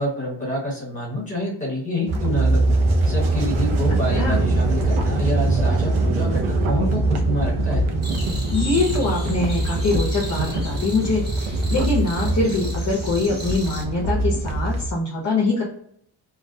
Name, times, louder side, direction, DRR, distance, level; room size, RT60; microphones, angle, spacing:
voice 1, 0.0-2.7 3.0-7.8, left 1 dB, 15° left, -3 dB, 1.1 m, -27 dB
sound 1, 2.1-14.9, right 2 dB, 85° right, 0.6 m, -22 dB
sound 2, 8.0-13.8, right 1 dB, 20° right, 0.8 m, -37 dB
voice 2, 8.5-15.6, left 3 dB, 35° left, -2 dB, 0.6 m, -23 dB
2.4 x 2.1 x 2.6 m, 0.68 s
wide cardioid pair, 170°, 47 cm